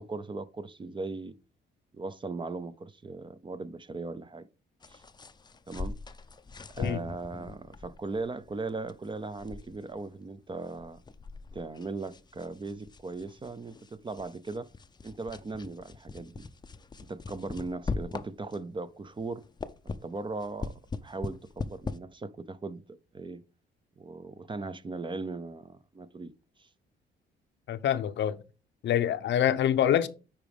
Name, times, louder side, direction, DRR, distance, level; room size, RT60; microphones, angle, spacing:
voice 1, 0.0-1.4 1.9-4.5 4.9-5.0 5.7-6.0 6.7-11.0 11.5-14.7 15.0-16.4 17.1-19.4 19.8-23.4 24.0-26.3 26.6-26.7, right 3 dB, 25° right, 0.6 m, -38 dB
sound 1, 4.8-18.8 19.2-22.0, left 4 dB, 20° left, 0.5 m, -41 dB
voice 2, 27.7-28.4 28.8-30.1, left 10 dB, 65° left, 0.7 m, -25 dB
8.8 x 4.9 x 3.5 m
cardioid pair, 90°, 20 cm